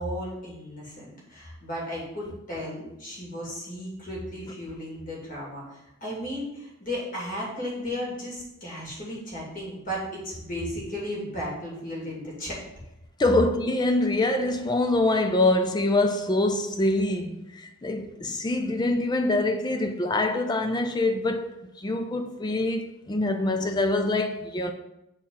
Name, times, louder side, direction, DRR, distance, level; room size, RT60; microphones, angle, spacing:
voice 1, 0.0-12.6, equal, 40° left, 2.4 m, -35 dB
voice 2, 13.2-24.7, left 2 dB, 20° left, 0.4 m, -25 dB
7.2 x 4.4 x 3.8 m
head